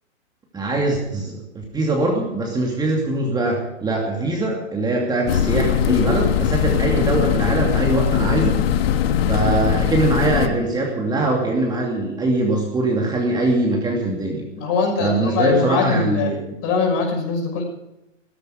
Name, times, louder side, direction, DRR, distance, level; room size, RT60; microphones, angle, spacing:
voice 1, 0.5-8.6 9.3-14.4 15.0-16.4, right 2 dB, 10° right, -1 dB, 2.6 m, -22 dB
sound 1, 5.3-10.5, left 9 dB, 50° left, 1.4 m, -20 dB
voice 2, 14.6-16.4 16.6-17.6, left 4 dB, 35° left, 2 dB, 6.4 m, -21 dB
16.5 x 14.5 x 5.1 m, 0.91 s
hypercardioid pair, 120°, 38 cm